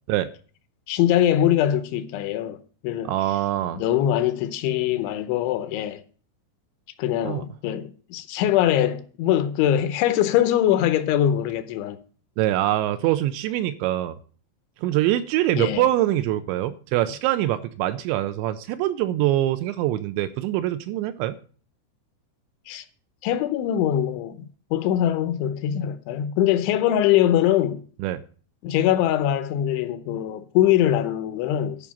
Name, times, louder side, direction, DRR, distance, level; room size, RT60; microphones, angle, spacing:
voice 1, 0.9-2.6 2.8-3.1 3.7-6.0 7.0-12.0 15.6-15.8 22.7-22.8 23.2-24.4 24.7-27.8 28.6-31.9, left 11 dB, 80° left, 3.1 m, -22 dB
voice 2, 3.1-3.8 7.3-7.4 12.4-14.2 14.8-21.4 28.0-28.2, right 14 dB, 80° right, 2.7 m, -24 dB
12.0 x 5.2 x 7.2 m
omnidirectional pair, 5.5 m